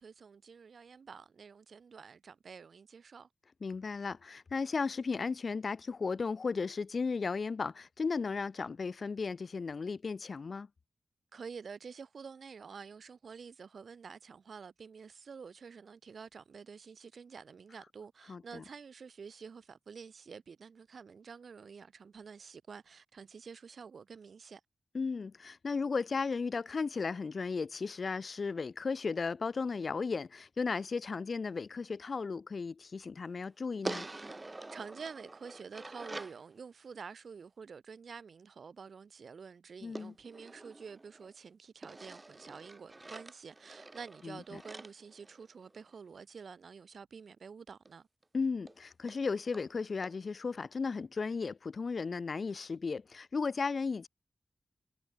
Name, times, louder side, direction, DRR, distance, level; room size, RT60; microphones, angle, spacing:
voice 1, 0.0-3.3 11.3-24.6 34.7-48.1, right 5 dB, 70° right, 4.2 m, -49 dB
voice 2, 3.6-10.7 18.3-18.6 24.9-34.1 39.8-40.1 44.2-44.6 48.3-54.1, left 4 dB, 55° left, 6.1 m, -35 dB
sound 1, 33.8-36.4 39.9-41.3 41.8-45.9 47.8-47.9 48.2-48.3 48.7-48.8 49.1-49.2 49.5-49.7 50.0-50.1, right 2 dB, 25° right, 3.7 m, -46 dB
wide cardioid pair, 95°, 0 cm